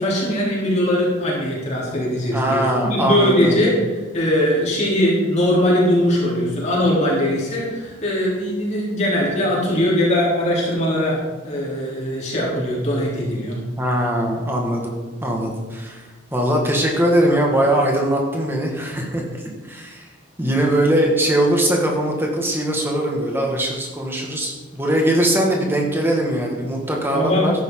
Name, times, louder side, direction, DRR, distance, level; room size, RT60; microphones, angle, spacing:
voice 1, 0.0-3.7 4.1-11.2 11.4-13.6 27.1-27.5, left 1 dB, 35° left, -5 dB, 3.8 m, -20 dB
voice 2, 2.3-3.6 13.8-14.9 15.2-16.0 16.3-19.2 19.6-20.1 20.4-27.5, right 1 dB, 10° right, 0 dB, 2.0 m, -21 dB
13.5 x 10.5 x 4.0 m, 1.3 s
head